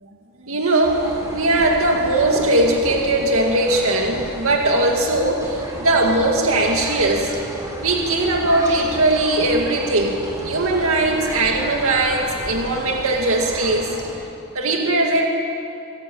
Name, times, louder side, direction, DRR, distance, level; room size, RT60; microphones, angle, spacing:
voice 1, 0.4-7.3 7.8-14.0 14.5-15.2, right 2 dB, 65° right, 1 dB, 2.3 m, -19 dB
sound 1, 0.8-14.1, right 1 dB, 15° right, 4.1 m, -33 dB
24.5 x 14.0 x 8.8 m, 2.6 s
head